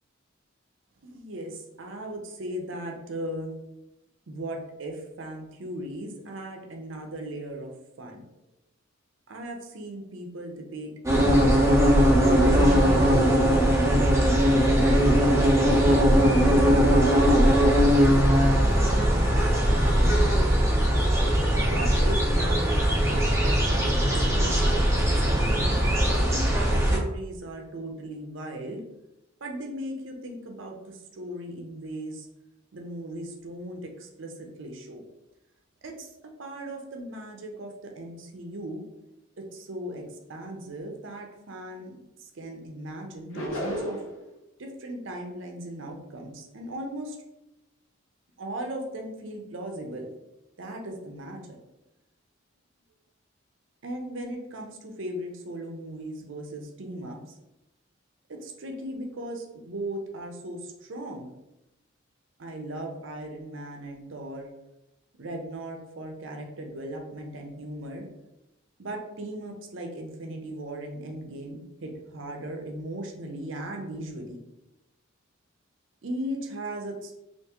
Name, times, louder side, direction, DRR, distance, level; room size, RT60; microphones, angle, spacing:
voice 1, 1.0-3.5 4.3-7.7 8.0-8.2 9.3-13.4 14.7-20.1 21.6-25.1 26.2-28.8 29.4-32.3 32.7-35.1 35.8-36.1 36.4-38.8 39.4-41.9 42.2-44.0 44.6-47.2 48.4-50.1 50.6-51.4 53.8-57.2 58.3-61.3 62.4-64.5 65.2-68.1 68.8-74.4 76.0-77.1, right 1 dB, 70° right, 2 dB, 0.6 m, -38 dB
sound 1, 11.0-27.0, equal, 15° right, 0.7 m, -20 dB
sound 2, 43.3-44.2, equal, 85° left, 0.7 m, -32 dB
3.5 x 2.6 x 2.9 m, 0.93 s
head